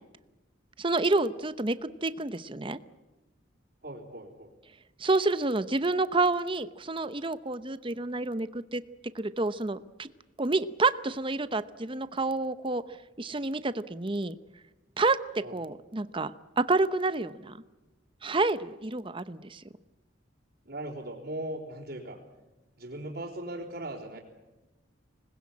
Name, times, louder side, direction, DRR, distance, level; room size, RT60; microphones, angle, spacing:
voice 1, 0.8-2.8 5.0-8.8 9.1-10.1 10.4-12.8 13.2-14.3 15.0-17.6 18.2-19.6, right 3 dB, 25° right, 13 dB, 0.8 m, -29 dB
voice 2, 3.8-4.5 15.4-15.6 20.7-22.2 22.8-24.2, right 1 dB, 55° right, -6 dB, 4.0 m, -38 dB
26.0 x 20.5 x 8.6 m, 1.1 s
head